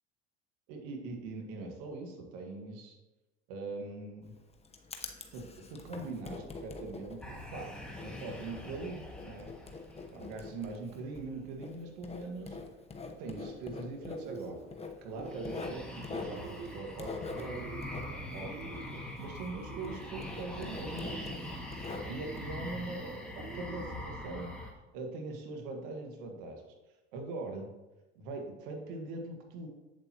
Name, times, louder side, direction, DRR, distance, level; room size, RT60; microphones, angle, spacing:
voice 1, 0.7-3.0 3.5-4.3 5.3-7.7 8.0-9.5 10.1-12.6 13.2-14.6 15.0-17.7 18.0-18.8 19.2-21.2 21.9-24.5 24.9-26.6 27.1-27.7 28.1-29.7, right 3 dB, 70° right, 2 dB, 1.7 m, -42 dB
Writing, 4.2-19.6 19.8-22.4, left 4 dB, 20° left, 1.0 m, -45 dB
sound 1, 7.2-10.9 15.2-24.7, left 1 dB, 5° left, 1.9 m, -43 dB
sound 2, 12.1-12.6 13.0-13.7 14.0-14.7 15.1-15.8 16.2-16.9 17.3-18.1 18.4-19.1 19.5-20.3 20.7-21.5 22.0-22.7 23.3-24.1, right 6 dB, 35° right, 1.1 m, -49 dB
7.9 x 7.6 x 2.9 m, 1.1 s
hypercardioid pair, 70°, 31 cm